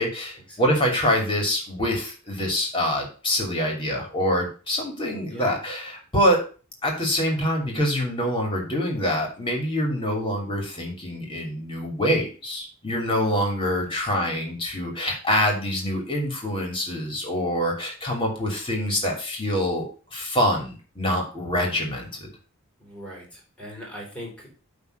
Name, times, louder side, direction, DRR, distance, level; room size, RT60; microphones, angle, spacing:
voice 1, 0.0-6.4 6.8-22.3, equal, 25° left, 1 dB, 2.8 m, -25 dB
voice 2, 22.8-24.5, equal, 5° left, -3 dB, 3.7 m, -40 dB
9.2 x 3.7 x 6.6 m, 0.37 s
head